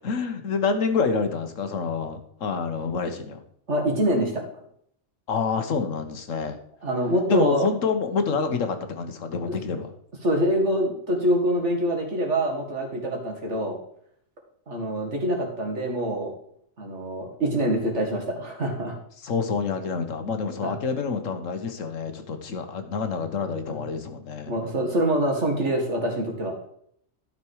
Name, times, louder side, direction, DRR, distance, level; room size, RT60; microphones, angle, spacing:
voice 1, 0.0-3.4 5.3-6.6 7.3-9.9 19.2-24.5, left 5 dB, 80° left, 7 dB, 1.5 m, -27 dB
voice 2, 3.7-4.4 6.8-7.6 9.4-9.5 10.2-13.8 14.7-16.3 16.8-19.0 20.6-20.8 23.7-23.8 24.5-26.5, right 1 dB, 65° right, 1 dB, 2.4 m, -25 dB
12.0 x 6.0 x 4.7 m, 0.68 s
omnidirectional pair, 1.3 m